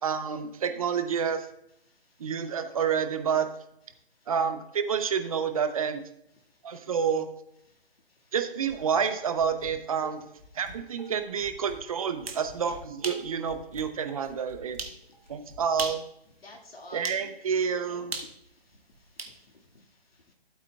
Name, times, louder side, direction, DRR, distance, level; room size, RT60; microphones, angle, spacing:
voice 1, 0.0-1.5 2.2-3.5 4.3-6.0 6.6-7.3 8.3-10.2 10.5-14.8 15.3-16.0 16.9-18.1, right 7 dB, 35° right, 8 dB, 0.7 m, -29 dB
Dishes pots and pans, 8.7-9.7 10.0-15.8, right 3 dB, ahead, 0.4 m, -47 dB
sound 1, 12.0-12.5 13.0-13.3 13.8-13.9 14.8-15.0 15.7-16.1 17.0-17.3 18.1-19.4, right 4 dB, 70° right, 1.4 m, -36 dB
voice 2, 16.4-18.1 18.5-20.3, left 2 dB, 70° left, 0 dB, 1.8 m, -52 dB
14.5 x 8.2 x 2.3 m, 0.79 s
figure-of-eight pair, 145°, 31 cm